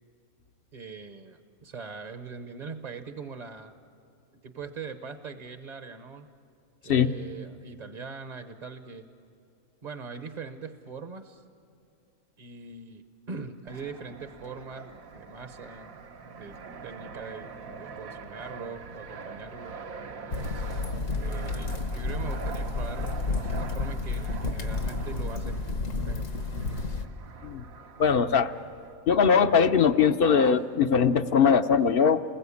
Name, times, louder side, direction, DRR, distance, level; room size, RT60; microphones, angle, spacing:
voice 1, 0.7-3.7 4.4-6.3 6.8-9.1 9.8-11.4 12.4-16.0 16.4-16.5 16.8-17.5 17.8-19.8 21.2-25.8 26.0-26.3 30.4-30.6, right 5 dB, 35° right, 8 dB, 0.9 m, -41 dB
Fixed-wing aircraft airplane, 13.7-28.9, right 5 dB, 75° right, 1.5 m, -44 dB
sound 1, 20.3-27.1, left 3 dB, 65° left, 1.5 m, -31 dB
voice 2, 28.0-28.5 29.1-32.2, left 6 dB, 50° left, 11 dB, 0.8 m, -21 dB
29.0 x 21.5 x 8.5 m, 2.5 s
omnidirectional pair, 1.5 m